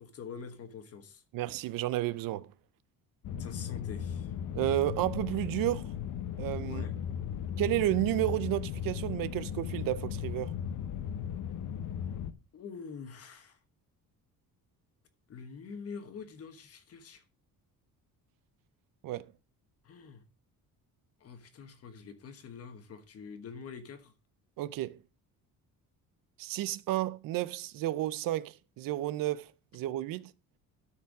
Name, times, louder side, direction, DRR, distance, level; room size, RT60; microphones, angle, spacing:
voice 1, 0.0-1.2 3.4-4.3 6.6-7.0 12.5-13.6 15.3-17.2 19.8-20.2 21.2-24.1, left 5 dB, 40° left, 1.4 m, -45 dB
voice 2, 1.3-2.5 4.5-5.9 6.4-6.8 7.6-10.5 19.0-19.3 24.6-25.0 26.4-30.3, right 15 dB, 70° right, 0.6 m, -32 dB
sound 1, 3.2-12.3, left 8 dB, 60° left, 0.9 m, -36 dB
13.0 x 4.6 x 4.8 m
cardioid pair, 160°, 35 cm